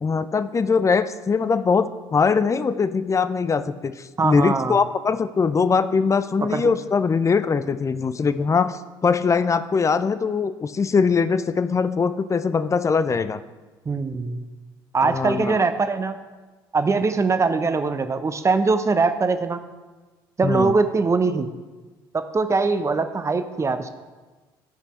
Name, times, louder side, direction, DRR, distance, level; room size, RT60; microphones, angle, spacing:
voice 1, 0.0-13.4 15.0-15.6 20.4-20.7, left 5 dB, 25° left, 13 dB, 0.5 m, -22 dB
voice 2, 4.2-4.8 6.5-6.7 13.9-14.5 14.9-16.2 16.7-19.6 20.4-21.5 22.1-23.9, right 4 dB, 25° right, 9 dB, 0.7 m, -22 dB
11.5 x 5.4 x 4.3 m, 1.3 s
hypercardioid pair, 55°, 12 cm